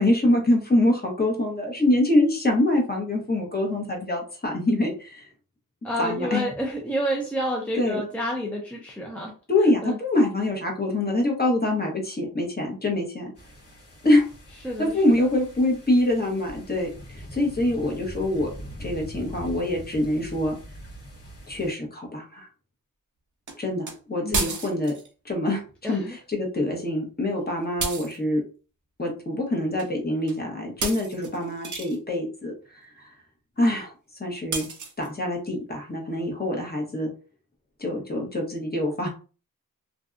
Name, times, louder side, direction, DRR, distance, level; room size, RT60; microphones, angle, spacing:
voice 1, 0.0-5.3 6.0-6.5 7.8-8.0 9.5-13.3 14.0-14.2 14.8-18.5 18.8-20.6 21.5-22.5 23.6-24.9 25.2-25.6 25.9-26.0 26.3-28.4 29.0-33.1 33.6-33.9 34.2-34.7 35.0-37.1 37.8-39.1, left 1 dB, 30° left, 0 dB, 1.0 m, -25 dB
voice 2, 5.8-9.3 9.8-10.0 14.6-15.3 24.2-24.6 25.8-26.2, equal, 5° left, -1 dB, 0.6 m, -29 dB
sound 1, 13.4-21.7, equal, 45° left, 1.3 m, -42 dB
sound 2, 23.5-23.6 23.9-24.0 24.3-25.1 27.8-28.2 29.8-29.9 30.3-30.4 30.8-32.0 34.5-35.1, right 4 dB, 60° right, 0.6 m, -31 dB
2.6 x 2.3 x 2.5 m, 0.36 s
cardioid pair, 55°, 34 cm